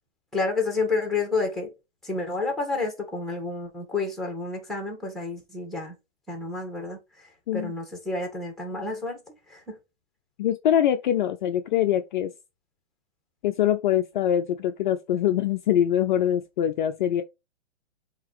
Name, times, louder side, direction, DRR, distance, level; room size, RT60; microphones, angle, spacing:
voice 1, 0.3-1.7 2.0-5.9 6.3-7.3 7.5-9.2 9.5-9.7, left 3 dB, ahead, 2.0 m, -30 dB
voice 2, 10.4-12.3 13.4-17.2, left 10 dB, 45° left, 0.6 m, -23 dB
7.3 x 3.0 x 4.9 m
hypercardioid pair, 145°, 35 cm